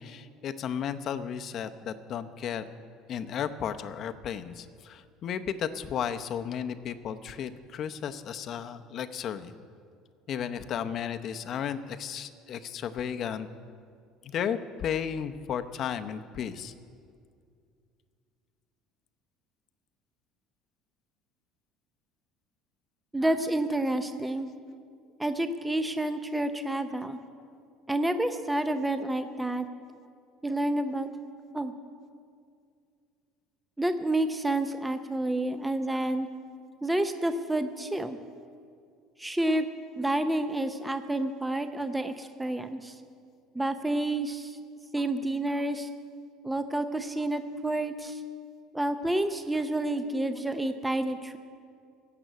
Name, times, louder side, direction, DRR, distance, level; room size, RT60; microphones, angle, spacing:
voice 1, 0.0-2.6 3.1-9.5 10.3-13.5 14.2-16.7, left 8 dB, 50° left, 9 dB, 0.7 m, -34 dB
voice 2, 23.1-24.5 25.2-27.2 27.9-29.6 30.4-31.1 31.5-31.7 33.8-36.3 36.8-38.2 39.2-39.7 40.0-43.0 43.5-44.6 44.9-45.9 46.4-48.2 48.7-51.4, right 1 dB, 10° right, 9 dB, 0.7 m, -29 dB
15.5 x 6.0 x 9.2 m, 2.3 s
supercardioid pair, 90°, 0 cm